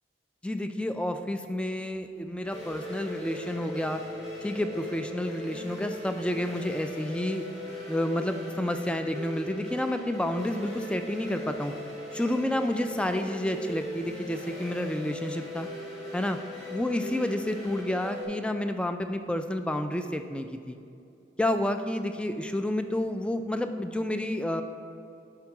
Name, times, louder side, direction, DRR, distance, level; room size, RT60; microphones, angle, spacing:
voice 1, 0.4-4.0 4.4-7.4 7.9-11.7 12.1-15.7 16.1-16.4 16.7-20.8 21.4-24.6, left 1 dB, 5° left, 7 dB, 0.3 m, -30 dB
sound 1, 2.5-18.2, left 1 dB, 40° left, 2.0 m, -39 dB
10.5 x 3.8 x 5.9 m, 2.6 s
head